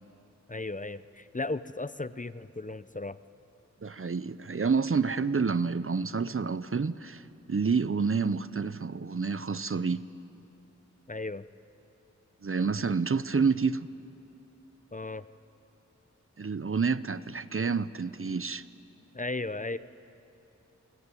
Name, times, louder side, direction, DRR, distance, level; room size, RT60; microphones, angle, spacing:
voice 1, 0.5-3.2 11.1-11.4 14.9-15.3 19.1-19.8, left 2 dB, 25° left, 0.7 m, -35 dB
voice 2, 3.8-7.2 7.5-10.0 12.4-13.9 16.4-18.6, right 5 dB, 45° right, 0.7 m, -28 dB
27.5 x 21.5 x 9.9 m
wide cardioid pair, 55°, 30 cm